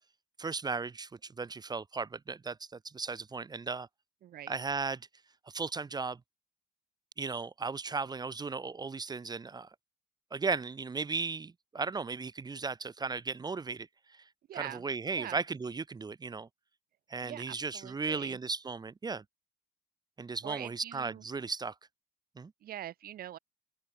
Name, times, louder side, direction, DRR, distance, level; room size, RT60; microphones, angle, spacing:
voice 1, 0.4-2.6 2.8-3.9 4.5-5.0 5.5-6.2 7.2-9.7 10.3-13.9 14.5-16.5 17.1-19.2 20.2-21.7 22.4-22.5, right 4 dB, 25° right, 1.5 m, -36 dB
voice 2, 4.2-4.5 14.5-14.8 15.1-15.4 17.2-18.4 20.4-21.3 22.6-23.4, right 12 dB, 60° right, 3.1 m, -43 dB
open air
cardioid pair, 110°, 17 cm